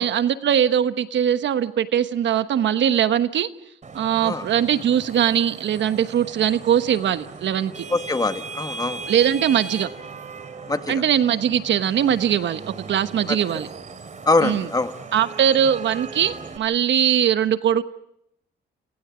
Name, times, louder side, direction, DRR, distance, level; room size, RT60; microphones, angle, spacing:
voice 1, 0.0-3.5 3.9-7.9 9.1-9.9 10.9-13.7 14.4-14.7 15.1-17.8, right 9 dB, 65° right, 11 dB, 1.1 m, -21 dB
Vehicle horn car horn honking / Traffic noise roadway noise, 3.8-16.6, right 4 dB, 40° right, 3.2 m, -38 dB
voice 2, 7.9-9.0 10.7-11.0 13.3-13.4 14.3-14.9, left 3 dB, 20° left, 8 dB, 1.7 m, -23 dB
29.5 x 29.5 x 5.1 m, 0.77 s
cardioid pair, 90°, 20 cm